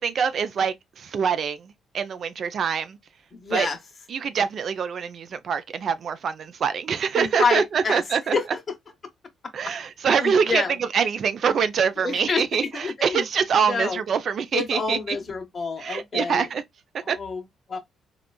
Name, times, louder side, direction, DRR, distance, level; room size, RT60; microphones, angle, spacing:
voice 1, 0.0-3.0 3.5-3.7 4.1-8.4 9.5-15.2 15.8-16.6 17.1-17.2, right 6 dB, 55° right, 0.4 m, -25 dB
voice 2, 3.3-3.8 7.1-8.0 8.3-8.7 10.2-10.8 12.0-12.4 12.7-13.2 13.6-14.0 14.5-16.5 17.0-17.4 17.7-17.8, left 4 dB, 40° left, 1.0 m, -27 dB
3.7 x 2.3 x 2.3 m
cardioid pair, 90°, 0 cm